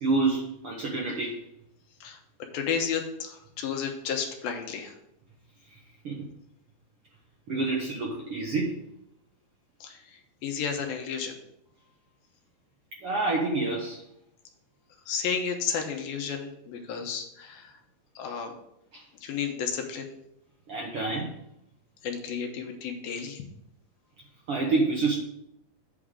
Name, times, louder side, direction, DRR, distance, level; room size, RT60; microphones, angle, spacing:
voice 1, 0.0-1.4 6.0-6.3 7.5-8.7 13.0-14.0 18.9-19.0 20.7-21.3 24.5-25.2, right 3 dB, 70° right, -2 dB, 1.3 m, -27 dB
voice 2, 2.5-4.9 9.8-11.4 15.1-17.7 18.2-18.5 19.2-20.1 22.0-23.4, left 7 dB, 85° left, 4 dB, 2.8 m, -32 dB
8.4 x 3.7 x 6.6 m, 0.78 s
omnidirectional pair, 4.2 m